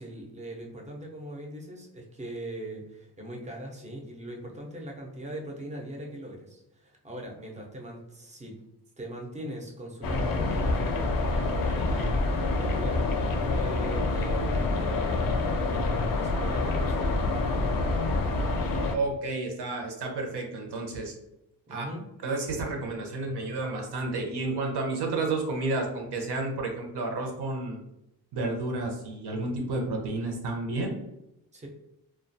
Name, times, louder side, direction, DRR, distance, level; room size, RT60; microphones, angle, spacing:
voice 1, 0.0-8.6 9.0-15.5 16.0-17.2 21.7-22.0 31.5-31.7, right 1 dB, 15° right, 0 dB, 0.5 m, -40 dB
sound 1, 10.0-19.0, left 2 dB, 55° left, 0.5 m, -27 dB
voice 2, 18.9-21.1 21.7-21.8 22.2-27.8 28.3-31.0, right 2 dB, 70° right, 2 dB, 0.7 m, -31 dB
2.3 x 2.3 x 2.6 m, 0.86 s
wide cardioid pair, 125°, 41 cm